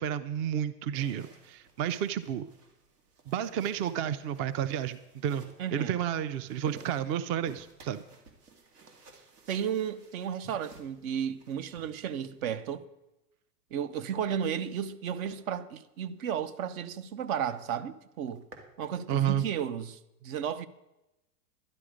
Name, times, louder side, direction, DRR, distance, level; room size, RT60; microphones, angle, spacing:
voice 1, 0.0-2.5 3.3-8.0 19.1-19.4, right 9 dB, 30° right, 0.5 m, -31 dB
sound 1, 0.9-12.6 13.9-14.9 15.2-15.4 15.9-16.1 16.5-16.6 16.9-17.0 17.3-17.7 18.1-18.7, right 3 dB, 90° right, 2.4 m, -56 dB
voice 2, 5.6-6.0 9.5-12.8 13.7-18.4 18.8-20.7, right 8 dB, 65° right, 1.0 m, -33 dB
12.0 x 11.0 x 5.0 m
hypercardioid pair, 115°, 45 cm